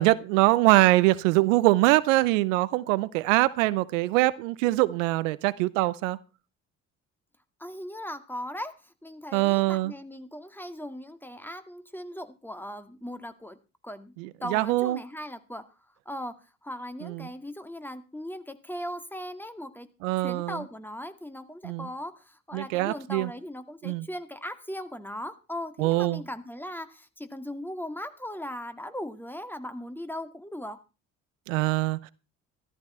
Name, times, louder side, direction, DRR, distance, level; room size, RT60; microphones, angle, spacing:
voice 1, 0.0-6.2 9.3-9.9 14.2-15.0 17.0-17.3 20.0-20.6 21.6-21.9 22.5-23.3 23.8-24.1 25.8-26.2 31.5-32.1, right 19 dB, 85° right, 0.8 m, -23 dB
voice 2, 7.6-13.6 13.8-14.1 14.4-15.6 16.1-16.4 16.6-19.9 20.2-30.8, equal, 5° left, 2.1 m, -38 dB
14.0 x 14.0 x 4.3 m
hypercardioid pair, 55°, 38 cm